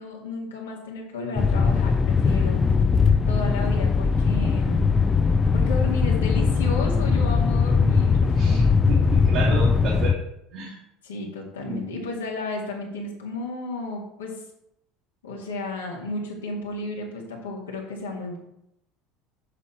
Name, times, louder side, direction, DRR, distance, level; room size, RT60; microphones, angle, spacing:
voice 1, 0.0-2.6 3.3-4.9 5.5-8.4 11.0-14.4 15.2-18.4, left 3 dB, 80° left, -2 dB, 2.2 m, -33 dB
sound 1, 1.4-10.1, left 5 dB, 25° left, 0.6 m, -20 dB
voice 2, 8.3-10.2 10.5-10.8 11.7-11.8, right 3 dB, 55° right, -5 dB, 2.2 m, -31 dB
8.2 x 6.7 x 4.3 m, 0.81 s
figure-of-eight pair, 70°, 0 cm